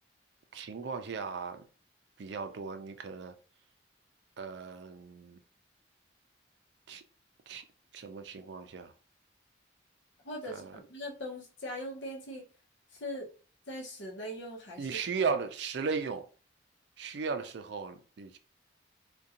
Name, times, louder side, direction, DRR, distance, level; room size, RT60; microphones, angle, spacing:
voice 1, 0.5-1.6 2.2-3.3 4.4-5.4 6.9-7.0 7.5-7.6 7.9-8.9 10.5-10.7 14.8-16.3 17.0-18.4, right 5 dB, 70° right, 0.4 m, -36 dB
voice 2, 10.2-12.5 12.9-13.3 13.7-15.0, equal, 75° left, 0.8 m, -40 dB
2.5 x 2.2 x 2.7 m
head